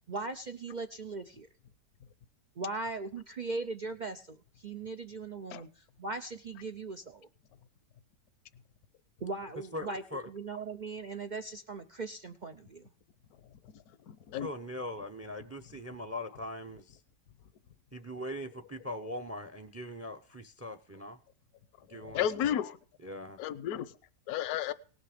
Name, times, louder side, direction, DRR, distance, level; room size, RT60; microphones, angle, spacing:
voice 1, 0.1-1.5 2.6-7.3 9.2-12.8, right 3 dB, 75° right, 8 dB, 0.4 m, -39 dB
voice 2, 9.7-10.3 14.4-17.0 17.9-21.2 21.9-22.5 23.0-23.4, left 1 dB, 15° right, 9 dB, 0.5 m, -41 dB
voice 3, 14.1-14.5 21.9-22.8 23.4-23.9 24.3-24.7, left 10 dB, 65° left, 16 dB, 1.1 m, -32 dB
18.5 x 6.5 x 5.0 m, 0.40 s
omnidirectional pair, 1.8 m